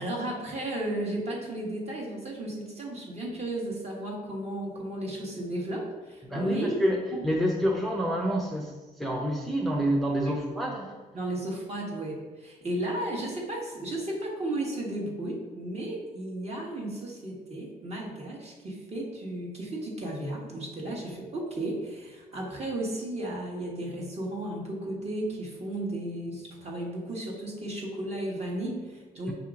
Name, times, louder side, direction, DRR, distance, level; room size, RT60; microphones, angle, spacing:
voice 1, 0.0-6.8 7.1-7.2 11.1-29.3, right 1 dB, 40° right, -2 dB, 1.3 m, -34 dB
voice 2, 6.3-10.9 29.3-29.4, equal, ahead, -1 dB, 0.6 m, -28 dB
5.0 x 2.8 x 3.6 m, 1.2 s
cardioid pair, 80°, 16 cm